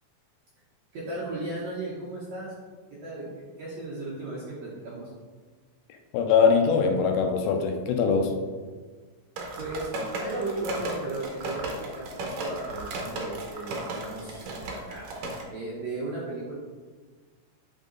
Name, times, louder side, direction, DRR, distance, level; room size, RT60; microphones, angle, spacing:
voice 1, 0.9-2.5 2.9-3.2 3.6-5.1 9.6-16.5, right 2 dB, 65° right, -6 dB, 1.7 m, -36 dB
voice 2, 6.1-8.3, left 5 dB, 90° left, 4 dB, 2.5 m, -22 dB
sound 1, 9.4-15.4, right 2 dB, 90° right, 1.5 m, -35 dB
8.1 x 3.6 x 3.9 m, 1.4 s
omnidirectional pair, 4.4 m